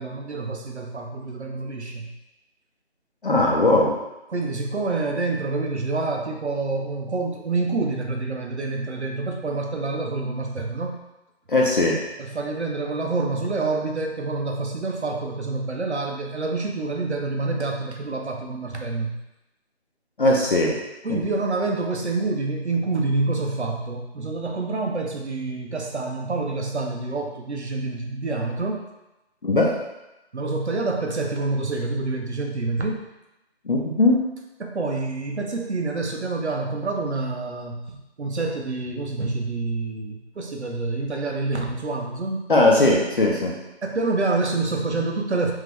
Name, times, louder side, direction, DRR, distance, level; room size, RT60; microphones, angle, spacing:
voice 1, 0.0-2.1 4.3-10.9 12.2-19.2 21.0-28.9 30.3-33.0 34.6-42.4 43.8-45.5, right 3 dB, 80° right, 2 dB, 0.8 m, -27 dB
voice 2, 3.2-3.9 11.5-12.0 20.2-20.8 21.1-21.2 29.4-29.7 33.7-34.2 42.5-43.5, left 2 dB, 50° left, -2 dB, 0.7 m, -19 dB
3.6 x 3.2 x 3.3 m, 0.96 s
figure-of-eight pair, 160°, 33 cm